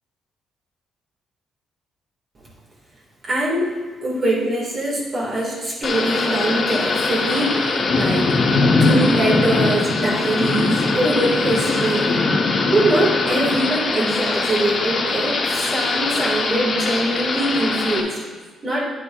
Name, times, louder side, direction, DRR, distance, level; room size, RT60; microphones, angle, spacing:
voice 1, 3.2-3.7 4.0-8.4 8.8-12.2 12.7-18.2 18.6-18.9, right 1 dB, 45° right, -5 dB, 2.4 m, -22 dB
Thunder / Rain, 5.8-18.0, left 3 dB, 45° left, 1.2 m, -21 dB
9.2 x 8.8 x 2.6 m, 1.4 s
cardioid pair, 90°, 0 cm